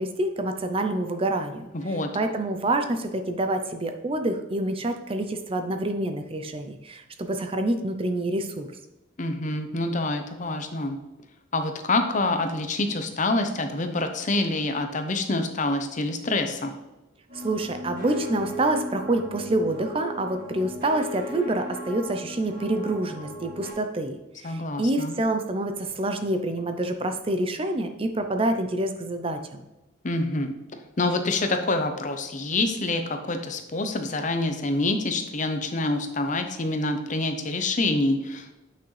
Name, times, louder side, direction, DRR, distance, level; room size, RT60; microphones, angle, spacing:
voice 1, 0.0-8.7 17.3-29.6, right 1 dB, 30° right, 7 dB, 0.5 m, -27 dB
voice 2, 1.7-2.1 9.2-11.0 11.5-16.7 24.4-25.1 30.0-30.5 31.0-38.6, left 2 dB, 40° left, 6 dB, 0.8 m, -26 dB
sound 1, 17.3-23.7, equal, 50° right, 2.4 m, -37 dB
8.7 x 6.0 x 3.3 m, 1.0 s
head